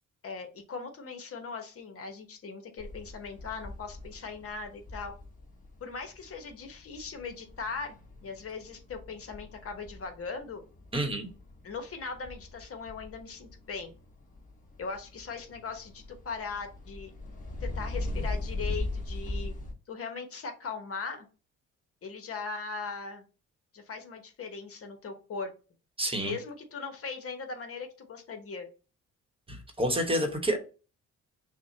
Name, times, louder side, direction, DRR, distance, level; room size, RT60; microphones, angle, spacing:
voice 1, 0.2-5.1 5.8-10.6 11.6-13.9 14.8-17.1 17.6-19.5 19.9-21.3 22.0-23.2 23.7-25.5 26.2-28.7, left 4 dB, 50° left, 6 dB, 1.0 m, -39 dB
sound 1, 2.8-19.7, left 2 dB, 25° left, 1.2 m, -40 dB
voice 2, 10.9-11.3 26.0-26.3 29.5-30.6, right 1 dB, 20° right, 5 dB, 1.1 m, -29 dB
6.0 x 2.2 x 2.7 m, 0.33 s
cardioid pair, 90°, 30 cm